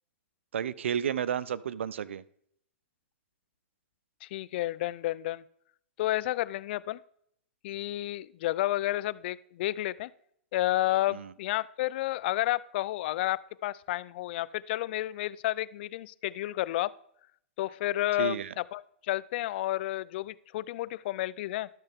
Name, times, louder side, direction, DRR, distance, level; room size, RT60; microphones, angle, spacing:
voice 1, 0.5-2.2 11.1-11.3 18.2-18.5, right 8 dB, 90° right, 0.4 m, -32 dB
voice 2, 4.2-5.4 6.0-7.0 7.6-10.1 10.5-16.9 17.6-21.7, left 16 dB, 60° left, 0.3 m, -31 dB
12.0 x 6.5 x 3.5 m
hypercardioid pair, 125°, 6 cm